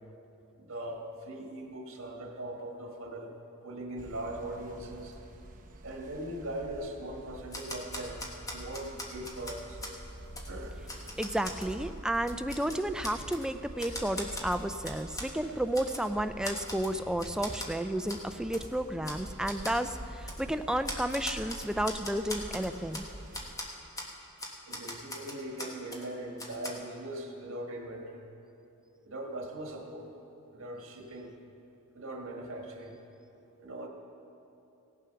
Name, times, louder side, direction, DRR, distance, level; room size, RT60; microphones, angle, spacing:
voice 1, 0.6-3.3 3.6-5.2 5.8-9.8 10.5-10.8 24.6-28.2 29.0-30.1 30.5-31.3 31.9-33.0 33.6-33.9, right 1 dB, 65° right, 2 dB, 1.6 m, -40 dB
sound 1, 4.0-23.5, right 1 dB, 40° right, 0.8 m, -47 dB
Typewriter, 7.5-10.0 10.4-10.5 10.9-11.7 12.1-13.4 13.8-15.3 15.7-16.1 16.4-16.9 17.2-17.7 18.1-18.2 18.5-18.7 19.0-19.2 19.5-19.8 20.3-20.4 20.8-23.1 23.3-23.7 24.0-24.1 24.4-26.0 26.4-26.7, left 1 dB, 15° left, 1.2 m, -40 dB
voice 2, 11.2-23.1, right 1 dB, 5° right, 9 dB, 0.3 m, -32 dB
17.5 x 7.2 x 5.7 m, 2.8 s
head